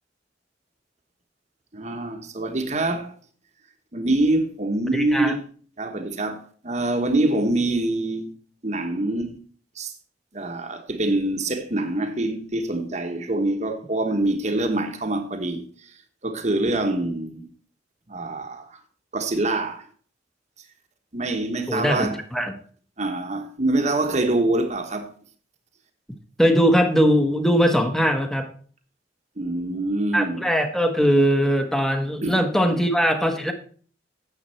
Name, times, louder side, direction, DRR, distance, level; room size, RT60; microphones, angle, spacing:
voice 1, 1.7-3.1 3.9-5.4 5.8-8.3 8.6-9.3 9.7-9.9 10.3-17.5 18.1-18.8 19.1-19.9 21.1-22.2 23.0-25.1 29.4-30.4 32.2-32.4, right 2 dB, 40° right, 1.3 m, -25 dB
voice 2, 4.9-5.3 21.7-22.5 26.4-28.5 30.1-33.5, equal, ahead, 1.2 m, -20 dB
9.8 x 7.5 x 4.4 m
head